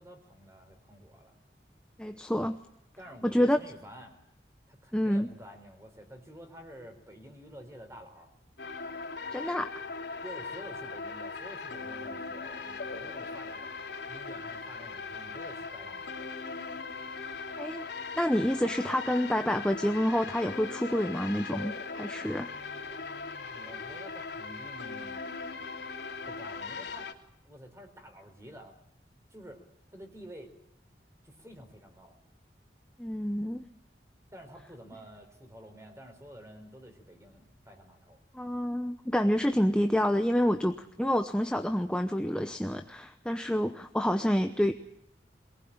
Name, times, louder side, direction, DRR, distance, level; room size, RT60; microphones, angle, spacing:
voice 1, 0.0-1.3 3.0-4.2 4.7-8.3 10.2-13.7 14.1-16.3 22.2-25.2 26.3-27.1 27.4-28.8 29.3-29.6 29.9-30.5 31.2-32.2 34.3-38.2, equal, 15° right, 5 dB, 4.2 m, -49 dB
voice 2, 2.0-2.6 3.2-3.6 4.9-5.3 9.3-9.7 17.6-17.8 18.2-22.5 33.0-33.7 38.3-44.7, equal, 5° left, 6 dB, 0.8 m, -28 dB
sound 1, 8.6-27.1, left 4 dB, 85° left, 2.8 m, -39 dB
22.5 x 19.5 x 8.8 m, 0.76 s
head